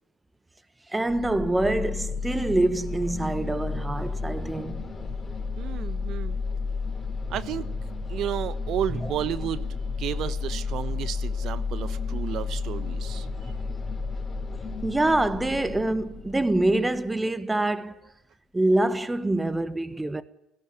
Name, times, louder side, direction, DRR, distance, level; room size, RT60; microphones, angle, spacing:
voice 1, 0.9-4.9 8.9-9.1 14.8-18.0 18.5-20.2, right 2 dB, 10° right, 1.3 m, -25 dB
sound 1, 1.1-17.0, left 4 dB, 15° left, 4.6 m, -32 dB
voice 2, 5.6-6.4 7.3-7.7 8.1-9.7 10.0-13.5, right 11 dB, 55° right, 1.0 m, -32 dB
17.0 x 17.0 x 9.1 m
hypercardioid pair, 75°, 0 cm